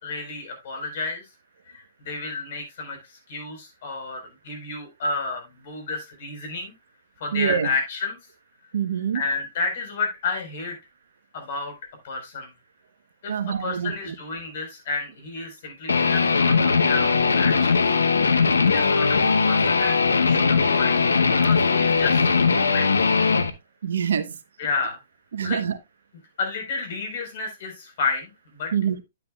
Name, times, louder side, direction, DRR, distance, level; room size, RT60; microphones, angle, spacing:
voice 1, 0.0-1.2 1.7-6.7 7.2-8.2 9.1-10.8 11.3-11.7 12.0-12.5 13.2-17.8 18.6-22.9 24.6-25.0 25.4-25.6 26.4-28.7, left 4 dB, 55° left, 4.5 m, -31 dB
voice 2, 7.3-7.7 8.7-9.2 13.3-14.1 23.8-24.3 25.3-25.8 28.7-29.0, right 8 dB, 70° right, 1.1 m, -25 dB
Guitar, 15.9-23.5, left 4 dB, 85° left, 0.9 m, -20 dB
9.6 x 9.0 x 2.4 m
hypercardioid pair, 125°, 0 cm